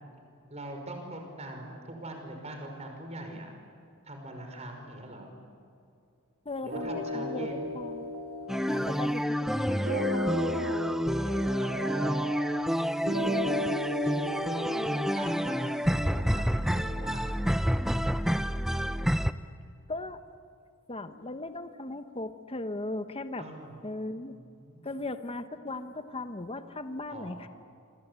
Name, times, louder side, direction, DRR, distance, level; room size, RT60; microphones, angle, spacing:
voice 1, 0.5-3.5 4.0-5.3 6.6-7.6 11.6-12.2 13.0-13.5 14.0-17.3 23.4-23.8 24.2-24.9 27.1-27.5, right 1 dB, 30° right, 4 dB, 5.5 m, -43 dB
voice 2, 6.4-8.1 8.7-10.9 13.1-13.8 19.9-20.2 20.9-23.4 23.8-24.4 24.8-27.5, left 2 dB, 25° left, 9 dB, 1.1 m, -38 dB
sound 1, 6.7-15.9, left 1 dB, 65° right, 2.9 m, -36 dB
sound 2, 8.5-19.3, equal, ahead, 0.6 m, -28 dB
27.0 x 26.0 x 8.3 m, 2.5 s
head